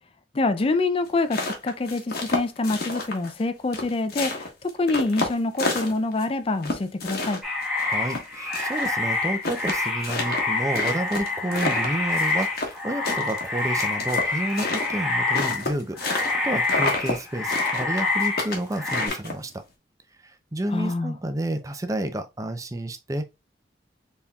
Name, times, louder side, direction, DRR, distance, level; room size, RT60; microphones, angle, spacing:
voice 1, 0.3-7.4 20.7-21.2, left 2 dB, 30° left, 0.4 m, -26 dB
sound 1, 1.1-3.4 3.7-6.2 6.6-8.9 9.1-9.2 9.4-12.8 13.0-16.4 16.6-17.2 17.5-19.5, left 2 dB, 60° left, 1.1 m, -29 dB
sound 2, 7.4-15.7 16.0-19.1, left 3 dB, ahead, 1.2 m, -27 dB
voice 2, 7.8-19.6 20.2-23.2, right 1 dB, 20° right, 0.5 m, -30 dB
4.1 x 3.6 x 2.3 m
head